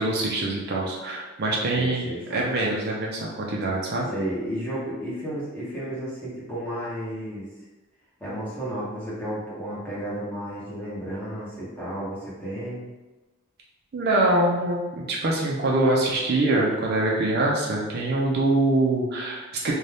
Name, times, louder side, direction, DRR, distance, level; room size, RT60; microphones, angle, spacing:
voice 1, 0.0-4.1 13.9-19.7, right 2 dB, 50° right, -2 dB, 0.4 m, -24 dB
voice 2, 1.7-2.7 4.1-7.5 8.2-12.9, equal, 10° left, -8 dB, 0.9 m, -33 dB
2.6 x 2.2 x 3.3 m, 1.2 s
head